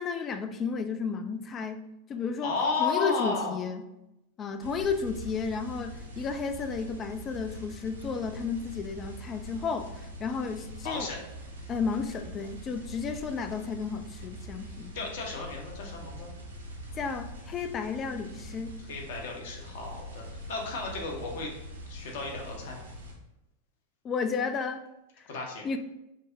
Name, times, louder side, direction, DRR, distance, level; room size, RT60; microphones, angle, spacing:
voice 1, 0.0-1.8 2.1-2.5 2.8-3.8 4.4-11.1 11.7-14.9 16.9-18.7 24.0-24.8 25.2-25.3 25.6-25.8, left 5 dB, 25° left, 8 dB, 0.3 m, -32 dB
voice 2, 2.4-3.6 10.8-11.2 14.9-16.3 18.9-21.5 21.9-22.9 25.3-25.6, left 4 dB, 55° left, 0 dB, 0.8 m, -33 dB
sound 1, 4.6-23.1, equal, 75° right, 0.7 m, -43 dB
5.1 x 2.0 x 2.6 m, 0.90 s
figure-of-eight pair, 90°, 0 cm